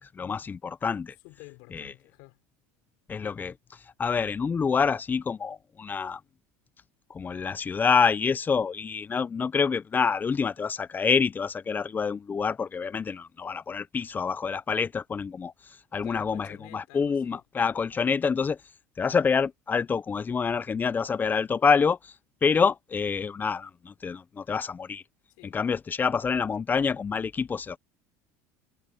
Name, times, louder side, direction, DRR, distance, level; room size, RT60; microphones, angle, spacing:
voice 1, 0.2-1.1 1.7-1.9 3.1-3.5 4.0-6.2 7.1-15.5 15.9-18.6 19.0-22.1 22.4-25.0 25.5-27.8, left 5 dB, 25° left, 0.9 m, -27 dB
voice 2, 1.2-2.4 16.0-17.4 17.9-18.0 25.3-25.6, left 27 dB, 70° left, 5.0 m, -50 dB
supercardioid pair, 100°, 8 cm